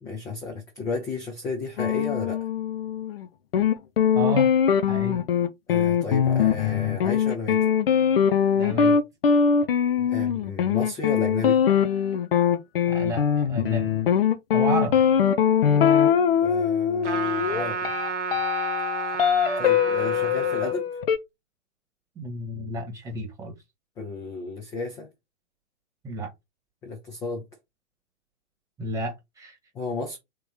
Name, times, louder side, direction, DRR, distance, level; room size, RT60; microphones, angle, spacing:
voice 1, 0.0-2.5 5.7-7.7 10.1-11.6 16.4-17.9 19.6-20.9 24.0-25.1 26.8-27.5 29.7-30.2, left 3 dB, 10° left, 0.5 m, -33 dB
sound 1, 1.8-3.3 3.5-21.2, left 8 dB, 55° left, 0.7 m, -22 dB
voice 2, 4.1-4.5 4.9-5.2 8.6-9.0 12.9-13.9 14.5-15.0 22.2-23.5 26.0-26.3 28.8-29.6, right 1 dB, 10° right, 1.3 m, -31 dB
Trumpet, 17.0-20.7, right 4 dB, 75° right, 0.9 m, -30 dB
3.6 x 3.0 x 4.7 m
figure-of-eight pair, 115°, 36 cm